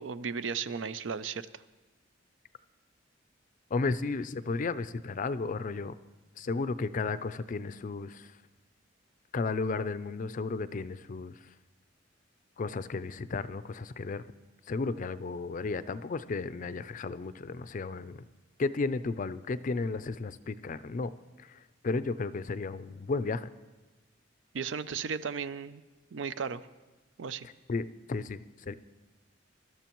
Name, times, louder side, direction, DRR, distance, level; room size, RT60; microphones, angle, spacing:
voice 1, 0.0-1.6 24.5-25.8 26.1-26.7 27.2-27.5, right 6 dB, 80° right, 14 dB, 0.5 m, -35 dB
voice 2, 3.7-5.9 6.4-8.3 9.3-11.4 12.6-14.2 14.7-18.2 18.6-21.1 21.4-23.5 27.7-28.7, left 3 dB, 45° left, 14 dB, 0.4 m, -33 dB
23.5 x 12.5 x 3.0 m, 1.2 s
head